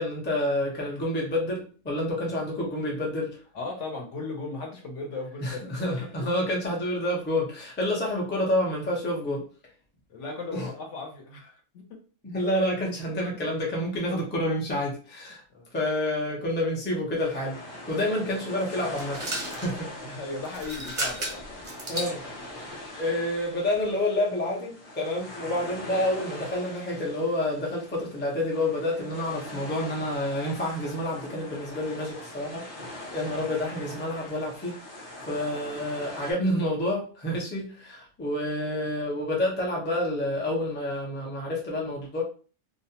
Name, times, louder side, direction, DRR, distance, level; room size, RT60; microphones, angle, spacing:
voice 1, 0.0-3.4 5.4-9.4 10.5-10.7 12.2-15.4 15.7-17.6 17.9-19.9 21.2-21.3 21.9-22.3 22.5-32.7 33.1-42.2, left 1 dB, 15° left, 0.5 m, -29 dB
voice 2, 3.5-6.3 10.1-12.0 13.3-13.4 15.5-15.7 20.0-21.4, left 3 dB, 70° left, 1.0 m, -37 dB
sound 1, 17.2-36.3, left 1 dB, 40° left, 0.8 m, -42 dB
sound 2, 18.9-19.7 20.4-22.2, right 1 dB, 40° right, 0.5 m, -33 dB
2.4 x 2.1 x 2.8 m
omnidirectional pair, 1.4 m